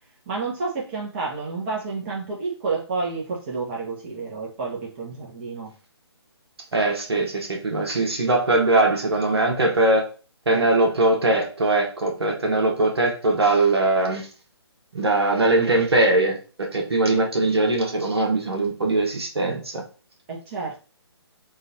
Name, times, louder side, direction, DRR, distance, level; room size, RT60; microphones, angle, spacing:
voice 1, 0.3-5.7 10.5-10.6 20.3-20.8, right 4 dB, 25° right, 1.0 m, -30 dB
voice 2, 6.7-10.1 10.4-14.3 14.9-19.8, right 2 dB, 65° right, 1.6 m, -21 dB
3.8 x 2.6 x 4.2 m
figure-of-eight pair, 140°, 14 cm